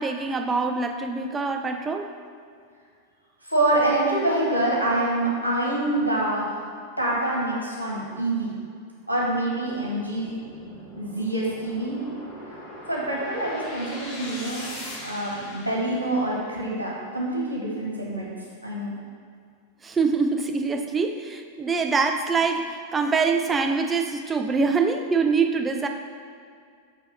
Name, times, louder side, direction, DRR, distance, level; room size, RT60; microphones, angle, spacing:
voice 1, 0.0-2.1 19.8-25.9, right 4 dB, 15° right, 5 dB, 0.5 m, -24 dB
voice 2, 3.5-6.6 7.0-8.5 9.1-10.3 11.0-12.0 12.9-14.7 15.0-18.3 18.6-18.9, right 1 dB, 90° left, -4 dB, 1.7 m, -26 dB
sound 1, 9.5-16.8, left 1 dB, 35° left, 1.4 m, -41 dB
7.3 x 3.5 x 5.9 m, 2.2 s
figure-of-eight pair, 90°, 0 cm